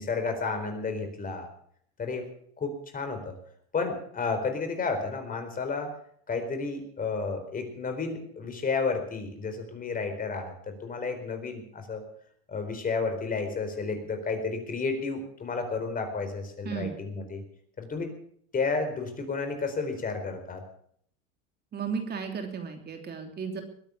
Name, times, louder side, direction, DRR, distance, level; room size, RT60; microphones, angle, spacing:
voice 1, 0.0-1.5 2.0-2.3 2.6-3.3 3.7-5.9 6.3-12.0 12.5-17.4 17.8-18.1 18.5-20.6, left 4 dB, 30° left, 6 dB, 4.3 m, -31 dB
voice 2, 16.6-17.0 21.7-23.6, right 6 dB, 35° right, 5 dB, 3.1 m, -34 dB
21.0 x 9.1 x 7.0 m, 0.64 s
supercardioid pair, 100°, 30 cm